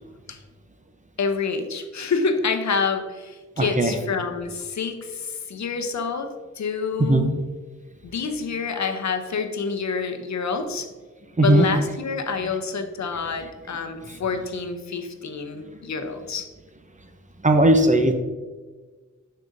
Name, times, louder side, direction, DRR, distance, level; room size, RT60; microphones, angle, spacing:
voice 1, 1.2-7.3 8.0-10.9 11.4-16.5, left 5 dB, 65° left, 7 dB, 0.8 m, -27 dB
voice 2, 3.6-4.0 7.0-7.3 11.4-11.7 14.1-14.2 17.4-18.1, right 1 dB, 25° right, 6 dB, 0.8 m, -18 dB
6.5 x 6.2 x 2.6 m, 1.4 s
cardioid pair, 55°, 31 cm